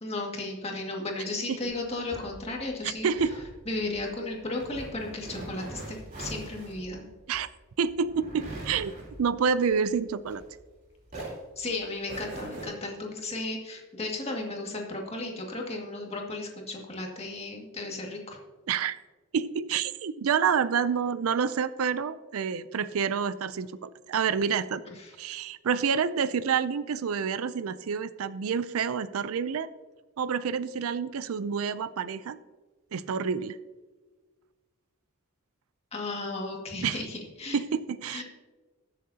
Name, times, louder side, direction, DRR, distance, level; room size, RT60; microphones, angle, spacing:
voice 1, 0.0-3.1 3.7-7.1 11.6-18.4 24.9-25.1 35.9-37.6 38.1-38.2, left 2 dB, 30° left, 0 dB, 2.0 m, -35 dB
sound 1, 1.7-10.8 11.1-12.7, right 2 dB, 40° right, 3.4 m, -42 dB
voice 2, 2.8-3.4 7.3-7.5 7.8-10.4 18.7-19.0 19.3-24.8 25.2-29.7 30.2-32.4 32.9-33.6 36.8-37.1 37.5-38.2, right 6 dB, 80° right, 15 dB, 0.4 m, -28 dB
20.0 x 7.4 x 2.8 m, 1.3 s
head